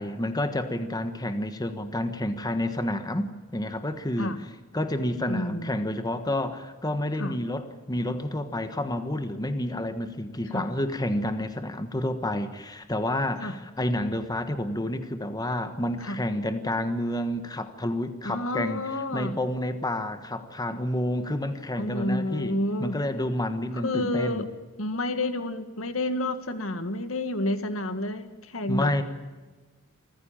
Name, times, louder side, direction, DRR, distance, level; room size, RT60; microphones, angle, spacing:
voice 1, 0.0-4.4 4.7-18.8 19.1-24.5 28.7-29.0, left 1 dB, 20° left, 9 dB, 1.3 m, -29 dB
voice 2, 5.3-5.8 7.2-7.4 10.5-10.7 13.4-13.5 16.0-16.2 18.2-19.4 21.8-23.0 23.7-24.5 24.8-29.0, left 1 dB, 70° left, 9 dB, 2.0 m, -30 dB
26.5 x 15.0 x 8.9 m, 1.3 s
head